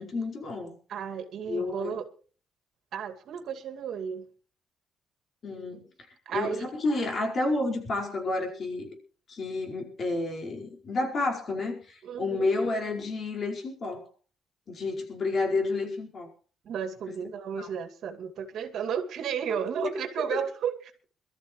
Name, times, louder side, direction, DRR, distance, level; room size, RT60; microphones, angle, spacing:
voice 1, 0.0-0.8 1.5-2.0 5.4-5.9 6.3-9.0 9.3-14.1 14.7-16.3 17.1-17.2 17.6-17.7 19.8-19.9 20.3-20.4, left 2 dB, 50° left, 4.9 m, -30 dB
voice 2, 0.9-2.0 2.9-4.3 6.3-6.7 12.0-12.5 16.6-21.0, right 7 dB, 70° right, 2.2 m, -33 dB
23.0 x 13.5 x 3.1 m
cardioid pair, 90°, 0 cm